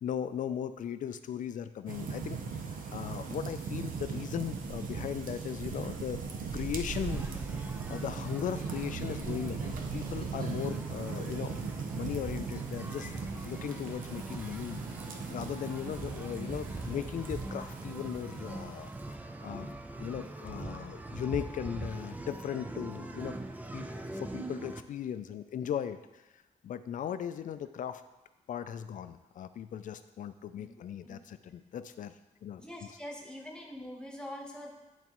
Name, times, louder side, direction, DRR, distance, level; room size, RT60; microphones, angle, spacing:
voice 1, 0.0-2.4 2.9-6.2 6.5-7.3 7.9-11.6 11.9-14.8 15.3-18.9 19.4-19.7 20.0-23.3 23.7-23.8 24.1-26.2 26.6-28.0 28.5-32.1 32.4-32.6, left 9 dB, 70° left, 11 dB, 0.4 m, -38 dB
sound 1, 1.9-19.1, right 5 dB, 85° right, 0.7 m, -39 dB
sound 2, 6.9-24.8, right 2 dB, 10° right, 0.4 m, -43 dB
voice 2, 32.6-34.7, left 1 dB, 5° left, -1 dB, 1.1 m, -44 dB
10.5 x 4.0 x 3.0 m, 1.0 s
wide cardioid pair, 135°, 14 cm